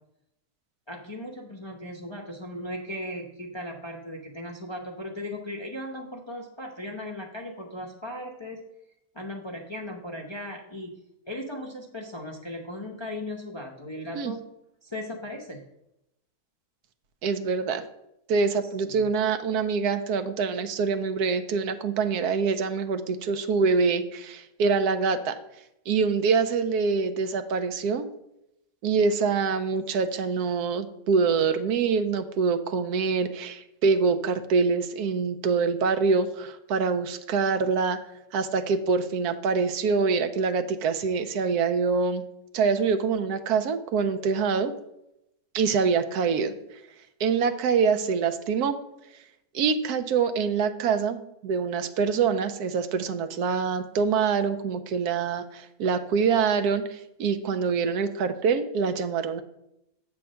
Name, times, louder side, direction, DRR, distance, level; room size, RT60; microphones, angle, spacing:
voice 1, 0.9-8.6 9.1-11.0 11.3-14.4 14.8-15.6 18.6-19.0, left 1 dB, 30° left, -1 dB, 0.5 m, -37 dB
voice 2, 17.2-17.8 18.3-25.4 25.9-28.1 28.8-38.0 38.3-42.2 42.5-44.7 45.5-46.5 47.2-48.8 49.5-59.4, right 5 dB, 80° right, 9 dB, 1.2 m, -25 dB
7.8 x 3.5 x 6.3 m, 0.83 s
omnidirectional pair, 1.6 m